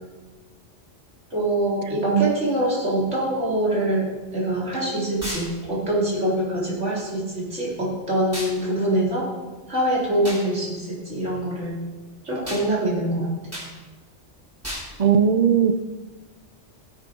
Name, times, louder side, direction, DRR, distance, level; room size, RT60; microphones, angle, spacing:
voice 1, 1.3-9.3 9.7-11.8 12.2-13.3, right 1 dB, 80° right, -6 dB, 4.3 m, -24 dB
sound 1, 5.2-5.5 8.3-8.6 10.2-10.4 12.5-12.7 13.5-13.7 14.6-14.9, equal, 10° right, 4.6 m, -32 dB
voice 2, 15.0-15.7, right 7 dB, 45° right, 10 dB, 0.6 m, -18 dB
16.5 x 8.3 x 5.3 m, 1.3 s
omnidirectional pair, 1.2 m